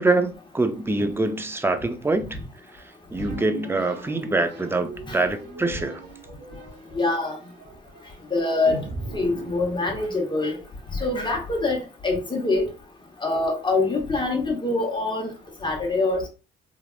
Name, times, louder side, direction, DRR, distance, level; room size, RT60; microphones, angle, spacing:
voice 1, 0.0-2.3 3.1-6.0, right 2 dB, 10° right, 0.4 m, -24 dB
sound 1, 3.2-10.7, right 1 dB, 70° right, 1.1 m, -40 dB
voice 2, 6.9-7.4 8.3-8.8 9.1-10.6 10.9-12.7 13.2-15.3 15.6-16.3, left 2 dB, 25° left, 1.1 m, -24 dB
3.3 x 2.4 x 2.4 m
cardioid pair, 90°, 20 cm